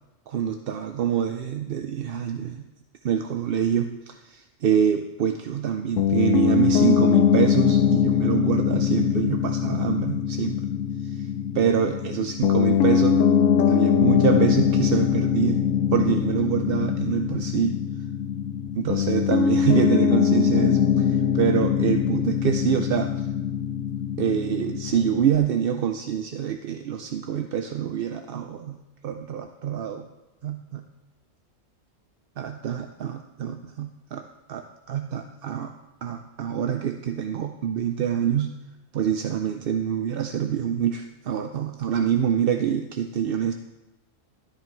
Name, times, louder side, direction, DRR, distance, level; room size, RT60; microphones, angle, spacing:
voice 1, 0.3-2.7 3.0-10.6 11.0-11.3 11.5-13.3 13.7-17.8 18.8-23.3 24.2-28.8 29.0-30.0 30.4-30.8 32.4-34.2 34.5-35.7 36.0-38.5 38.9-43.5, right 8 dB, 55° right, 6 dB, 0.7 m, -26 dB
Piano, 6.0-25.4, left 8 dB, 75° left, 1.0 m, -22 dB
13.0 x 10.0 x 4.6 m, 1.0 s
omnidirectional pair, 1.4 m